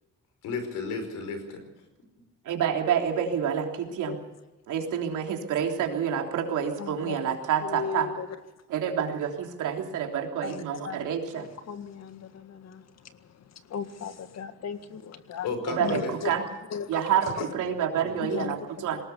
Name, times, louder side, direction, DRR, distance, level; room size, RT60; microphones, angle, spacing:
voice 1, 0.4-1.6 15.4-16.1 17.3-17.6 18.0-18.2, left 4 dB, 85° left, 7 dB, 5.0 m, -33 dB
voice 2, 2.4-4.2 4.7-8.1 8.7-11.5 15.7-16.4 16.9-19.0, right 8 dB, 80° right, 2 dB, 3.4 m, -28 dB
voice 3, 6.8-8.3 10.4-11.1 11.3-13.2 13.7-15.5 15.8-16.3 16.7-17.4 18.2-18.9, left 7 dB, 60° left, 9 dB, 1.9 m, -37 dB
20.5 x 18.0 x 7.0 m, 1.1 s
cardioid pair, 90°, 30 cm